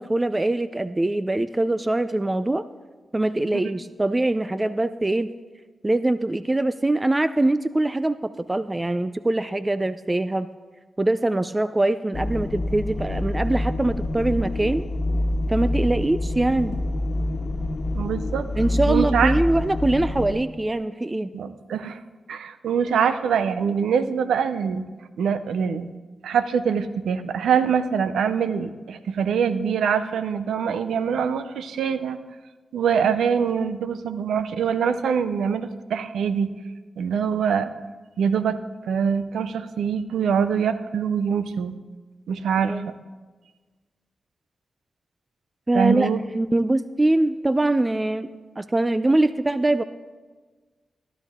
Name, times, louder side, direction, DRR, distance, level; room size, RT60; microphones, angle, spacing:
voice 1, 0.0-2.6 3.1-5.3 5.8-10.5 11.0-14.8 15.5-16.8 18.6-21.3 42.6-42.9 45.7-46.1 46.3-49.8, right 2 dB, 25° right, 13 dB, 0.4 m, -23 dB
sound 1, 12.1-20.3, left 1 dB, 65° left, 1.3 m, -26 dB
voice 2, 17.9-18.5 18.9-19.3 21.3-22.0 22.3-24.8 25.2-25.9 26.2-32.2 32.7-36.5 37.0-37.7 38.2-38.6 38.9-41.8 42.3-42.9 45.7-46.2, right 7 dB, 90° right, 12 dB, 0.5 m, -24 dB
15.5 x 11.0 x 3.6 m, 1.3 s
cardioid pair, 45°, 0 cm